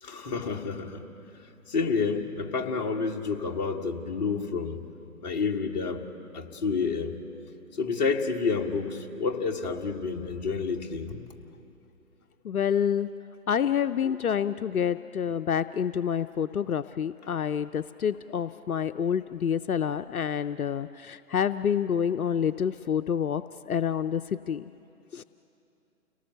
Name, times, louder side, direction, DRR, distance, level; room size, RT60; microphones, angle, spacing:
voice 1, 0.0-1.0 1.7-4.8 5.2-6.0 6.3-7.1 7.7-11.2, left 4 dB, 30° left, 0 dB, 1.4 m, -29 dB
voice 2, 12.4-13.1 13.5-24.7 25.1-25.2, left 8 dB, 75° left, 11 dB, 0.6 m, -28 dB
30.0 x 18.5 x 6.7 m, 2.8 s
figure-of-eight pair, 150°, 45 cm